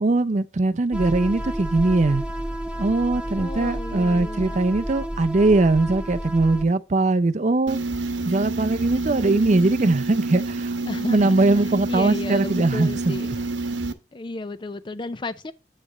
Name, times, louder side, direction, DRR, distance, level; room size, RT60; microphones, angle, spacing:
voice 1, 0.0-2.2 2.8-7.8 8.3-10.7 11.1-13.2, right 2 dB, 40° right, 0.5 m, -21 dB
sound 1, 0.9-6.6, right 1 dB, 5° right, 0.8 m, -31 dB
voice 2, 3.4-4.6 10.9-13.3 14.1-15.5, left 2 dB, 25° left, 0.5 m, -34 dB
sound 2, 7.7-13.9, right 3 dB, 80° right, 0.9 m, -28 dB
9.5 x 3.2 x 6.0 m
head